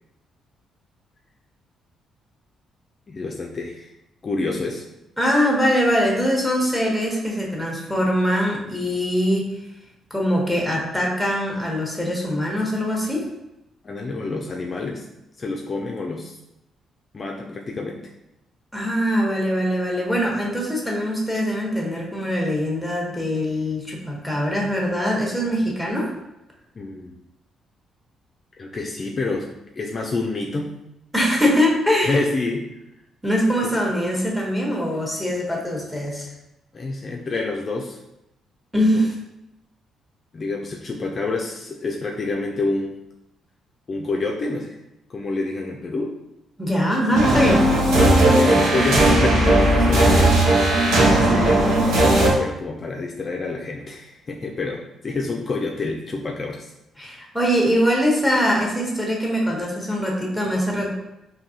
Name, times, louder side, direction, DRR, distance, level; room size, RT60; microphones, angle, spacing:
voice 1, 3.1-3.9 4.2-4.9 13.8-15.0 15.4-16.4 17.1-18.0 26.7-27.2 28.6-29.5 29.7-30.7 32.1-32.7 36.7-38.0 38.9-39.1 40.3-42.9 43.9-44.8 45.1-46.1 47.1-47.2 48.2-50.3 51.2-56.7, left 3 dB, 40° left, 0 dB, 0.4 m, -28 dB
voice 2, 5.2-9.5 10.1-13.2 18.7-26.1 31.1-32.2 33.2-36.3 38.7-39.1 46.6-47.6 57.0-60.9, equal, ahead, -2 dB, 1.0 m, -22 dB
sound 1, 47.1-52.3, right 1 dB, 85° right, 0.9 m, -16 dB
Musical instrument, 47.2-49.3, right 1 dB, 65° right, 1.4 m, -36 dB
3.9 x 2.7 x 2.7 m, 0.89 s
cardioid pair, 90°, 0 cm